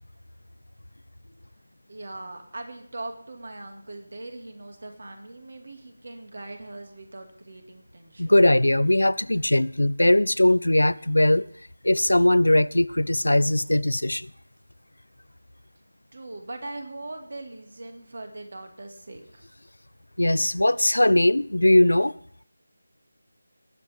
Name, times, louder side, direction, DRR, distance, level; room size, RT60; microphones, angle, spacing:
voice 1, 1.9-8.4 16.1-19.5, right 2 dB, 50° right, 2.3 m, -40 dB
voice 2, 8.2-11.5 11.8-14.3 20.2-22.1, left 1 dB, 70° left, 0.5 m, -20 dB
19.5 x 8.3 x 3.6 m
figure-of-eight pair, 160°, 0 cm